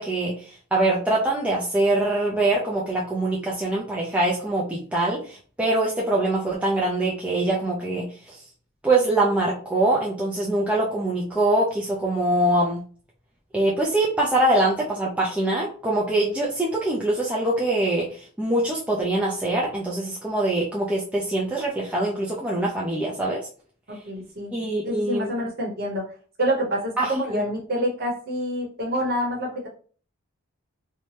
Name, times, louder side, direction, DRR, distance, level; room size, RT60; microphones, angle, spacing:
voice 1, 0.0-8.4 8.8-12.8 13.5-23.5 24.5-25.3 27.0-27.4, right 2 dB, 5° right, -5 dB, 0.3 m, -24 dB
voice 2, 24.0-24.5 24.8-26.1 26.4-29.7, equal, 45° right, 0 dB, 0.8 m, -27 dB
2.7 x 2.1 x 3.2 m, 0.42 s
head